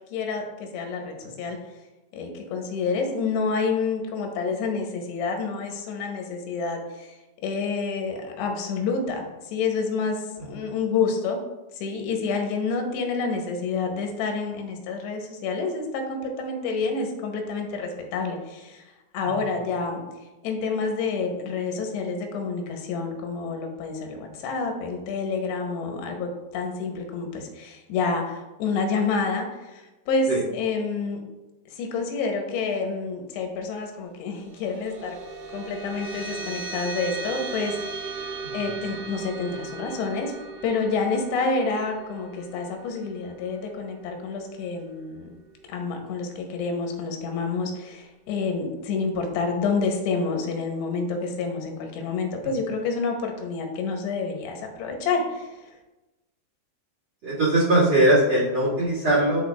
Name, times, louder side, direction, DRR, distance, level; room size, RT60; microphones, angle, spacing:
voice 1, 0.1-1.6 2.1-7.2 7.4-11.4 11.8-18.8 19.1-20.0 20.4-31.2 31.7-35.2 35.5-38.2 38.5-40.3 40.6-45.4 45.7-55.5, left 4 dB, 85° left, 3 dB, 3.0 m, -28 dB
sound 1, 34.2-45.0, right 4 dB, 85° right, 3.2 m, -37 dB
voice 2, 38.4-38.7 57.2-59.4, right 1 dB, 40° right, -7 dB, 2.1 m, -21 dB
10.5 x 4.1 x 2.4 m, 1.1 s
omnidirectional pair, 4.8 m